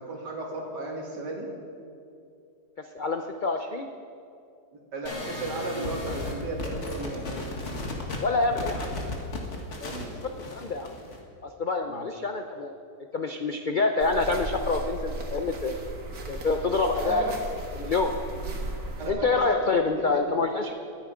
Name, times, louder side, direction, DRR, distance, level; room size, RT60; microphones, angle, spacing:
voice 1, 0.0-1.5 4.9-7.3 9.9-10.1 11.9-12.1 16.9-17.4 18.3-18.6 19.0-19.4 19.9-20.3, right 2 dB, 90° right, -1 dB, 2.8 m, -35 dB
voice 2, 2.8-3.9 8.2-8.9 9.8-9.9 10.2-10.9 11.4-12.7 13.1-15.8 16.3-17.2 17.7-18.1 19.1-20.7, left 3 dB, 70° left, 5 dB, 0.4 m, -27 dB
sound 1, 5.1-11.2, left 2 dB, 45° left, 2.0 m, -35 dB
sound 2, 14.0-19.1, right 2 dB, 60° right, 2.0 m, -36 dB
22.0 x 9.3 x 5.0 m, 2.5 s
omnidirectional pair, 1.8 m